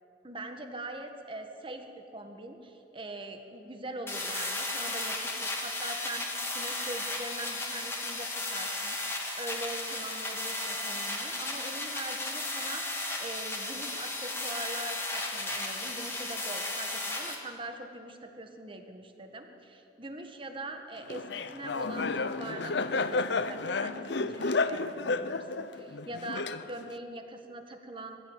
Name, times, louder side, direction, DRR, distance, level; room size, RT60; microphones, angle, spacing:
voice 1, 0.2-6.3 6.5-12.8 13.2-28.2, right 2 dB, 25° right, 5 dB, 1.6 m, -42 dB
sound 1, 4.1-17.4, left 2 dB, 15° left, 2.3 m, -35 dB
Laughter, 21.1-27.0, left 3 dB, 60° left, 0.7 m, -31 dB
21.0 x 15.0 x 9.1 m, 2.9 s
head